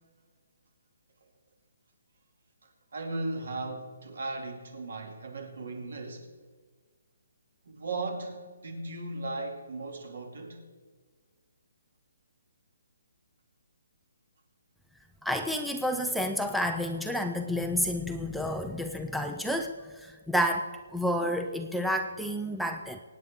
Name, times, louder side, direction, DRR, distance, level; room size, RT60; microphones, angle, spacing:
voice 1, 2.9-6.3 7.7-10.7, right 2 dB, 65° right, 2.5 m, -37 dB
voice 2, 15.2-23.0, equal, ahead, 0.3 m, -30 dB
24.0 x 9.3 x 3.6 m
hypercardioid pair, 175°, 0 cm